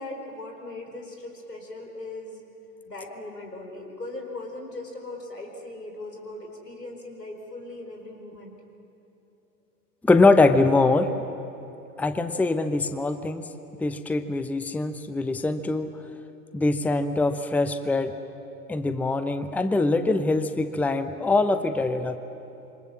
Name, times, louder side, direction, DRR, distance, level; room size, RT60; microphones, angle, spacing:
voice 1, 0.0-2.4 2.8-8.6, left 2 dB, 90° left, 2 dB, 4.2 m, -39 dB
voice 2, 10.0-11.1 12.0-13.5 13.8-15.9 16.5-18.1 18.7-22.2, left 3 dB, 5° left, 10 dB, 0.8 m, -23 dB
26.5 x 25.0 x 7.5 m, 2.9 s
figure-of-eight pair, 90°, 47 cm